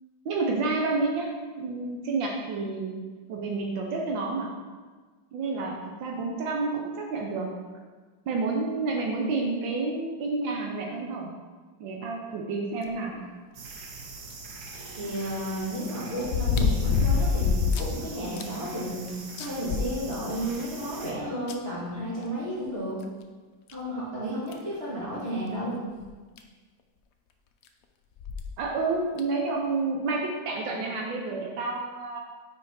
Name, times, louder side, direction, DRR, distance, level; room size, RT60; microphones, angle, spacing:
voice 1, 0.2-1.3 1.6-3.0 3.3-4.5 5.3-7.5 8.3-11.3 11.8-13.2 28.6-32.2, right 3 dB, 85° right, 0 dB, 1.6 m, -29 dB
sound 1, 13.5-21.1, right 3 dB, 60° right, 1.4 m, -43 dB
sound 2, 14.3-14.4 16.2-18.0 18.4-18.5 18.9-19.0 19.4-20.5 21.5-21.6 23.0-23.1 23.7-23.8 24.5-24.7 26.1-26.2 26.4-26.5 28.2-28.5 29.2-29.3, left 5 dB, 70° left, 0.8 m, -25 dB
voice 2, 15.0-23.0 23.7-25.8, equal, 30° right, -8 dB, 2.5 m, -32 dB
5.7 x 5.1 x 4.8 m, 1.4 s
omnidirectional pair, 2.0 m